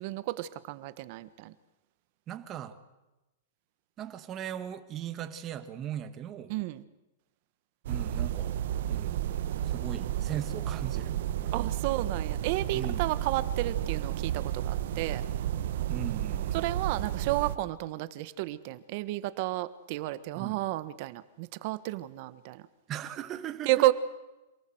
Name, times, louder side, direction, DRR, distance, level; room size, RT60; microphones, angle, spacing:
voice 1, 0.0-1.5 6.5-6.8 11.5-15.2 16.5-22.6 23.6-23.9, right 17 dB, 45° right, 14 dB, 1.3 m, -31 dB
voice 2, 2.3-2.8 4.0-6.5 7.9-8.6 8.9-9.2 9.6-11.7 12.7-13.1 15.9-16.6 20.3-20.6 22.9-23.9, right 10 dB, 25° right, 9 dB, 1.8 m, -38 dB
sound 1, 7.8-17.6, right 11 dB, 60° right, 1.2 m, -32 dB
27.5 x 18.5 x 7.9 m, 1.0 s
supercardioid pair, 160°, 0 cm